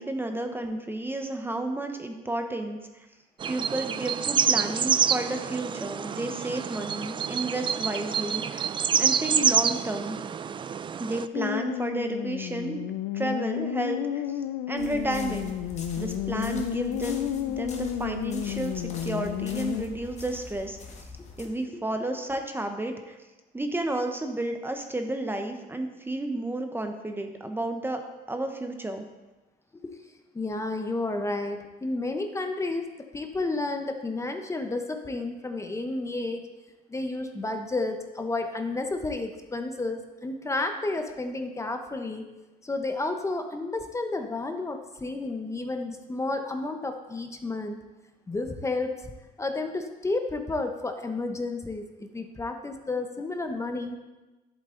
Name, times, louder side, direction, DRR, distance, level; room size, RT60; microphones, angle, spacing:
voice 1, 0.0-3.1 3.5-8.6 9.0-10.2 11.0-12.8 13.1-14.4 14.7-15.5 16.0-20.8 21.4-23.2 23.5-28.0 28.3-29.0, right 1 dB, 15° right, 5 dB, 0.9 m, -32 dB
sound 1, 3.4-11.3, right 7 dB, 30° right, 0.3 m, -27 dB
sound 2, 11.3-19.8, left 10 dB, 85° left, 0.5 m, -31 dB
sound 3, 14.8-21.5, left 4 dB, 40° left, 1.6 m, -44 dB
voice 2, 30.3-32.9 33.1-36.5 36.9-42.3 42.6-47.8 48.3-49.0 49.4-54.0, left 2 dB, 15° left, 6 dB, 0.9 m, -31 dB
11.0 x 8.0 x 3.9 m, 1.1 s
cardioid pair, 110°, 17 cm